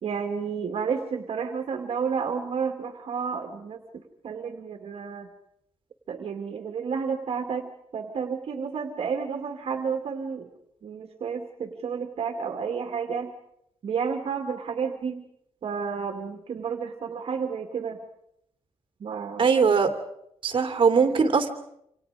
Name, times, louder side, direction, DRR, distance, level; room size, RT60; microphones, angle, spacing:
voice 1, 0.0-5.3 6.1-10.5 10.8-13.3 13.8-15.2 15.6-18.0 19.0-19.5, right 6 dB, 70° right, 3 dB, 2.3 m, -31 dB
voice 2, 19.4-19.9 20.4-21.5, right 5 dB, 55° right, 6 dB, 3.0 m, -20 dB
28.0 x 26.5 x 5.0 m, 0.76 s
wide cardioid pair, 125°, 10 cm